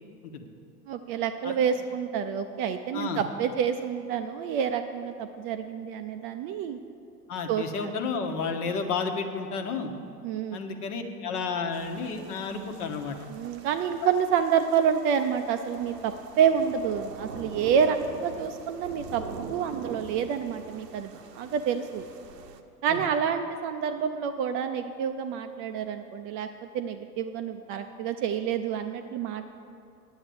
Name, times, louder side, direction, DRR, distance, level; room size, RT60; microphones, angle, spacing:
voice 1, 0.9-6.8 7.5-7.6 10.2-10.6 13.3-19.2 19.5-22.1 22.8-26.5 26.7-29.5, right 7 dB, 30° right, 7 dB, 0.3 m, -28 dB
voice 2, 7.3-9.9 10.5-13.2 14.0-14.1 22.9-23.0, left 5 dB, 70° left, 4 dB, 1.3 m, -31 dB
sound 1, 11.7-22.6, right 5 dB, 85° right, 0.9 m, -43 dB
9.7 x 7.9 x 7.0 m, 2.5 s
hypercardioid pair, 90°, 48 cm